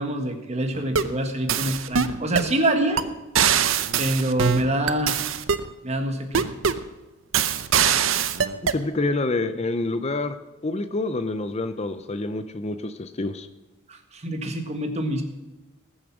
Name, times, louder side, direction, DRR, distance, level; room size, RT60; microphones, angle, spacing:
voice 1, 0.0-3.0 4.0-5.2 5.8-6.4 13.9-15.2, right 1 dB, 30° right, 6 dB, 1.6 m, -26 dB
sound 1, 0.7-1.2 1.5-2.5 3.0-3.1 3.4-5.7 6.3-6.9 7.3-8.8, right 7 dB, 70° right, 0.7 m, -22 dB
voice 2, 8.7-10.4 10.6-13.5, left 2 dB, 30° left, 11 dB, 0.6 m, -27 dB
19.0 x 7.3 x 6.1 m, 1.1 s
head